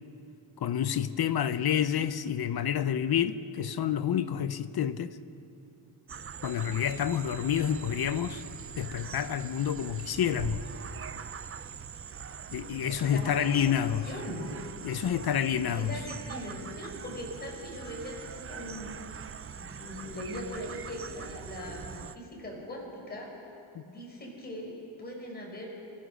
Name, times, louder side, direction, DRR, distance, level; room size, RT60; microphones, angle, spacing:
voice 1, 0.6-5.2 6.4-8.4 8.8-10.7 12.5-14.1 14.8-15.9 23.7-23.8, left 9 dB, 50° left, 0.7 m, -29 dB
sound 1, 6.1-22.2, right 7 dB, 30° right, 0.5 m, -42 dB
voice 2, 12.8-14.4 15.6-18.9 19.5-23.3 23.8-25.7, left 1 dB, 20° left, 5.3 m, -41 dB
29.0 x 15.0 x 6.2 m
wide cardioid pair, 135°, 48 cm